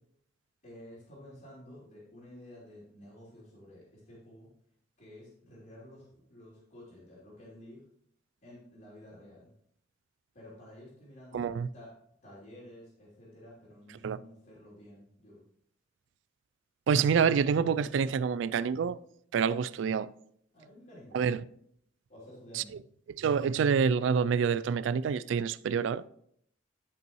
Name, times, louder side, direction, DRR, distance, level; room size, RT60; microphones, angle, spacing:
voice 1, 0.6-4.5 5.0-7.8 8.4-9.5 10.3-11.9 12.2-15.4 20.5-21.2 22.1-22.7, left 1 dB, 50° left, 3.0 m, -51 dB
voice 2, 11.3-11.7 14.0-14.2 16.9-19.0 19.3-20.1 21.1-21.4 22.5-22.6 23.2-26.0, right 6 dB, 65° right, 0.3 m, -27 dB
11.5 x 5.4 x 3.0 m
head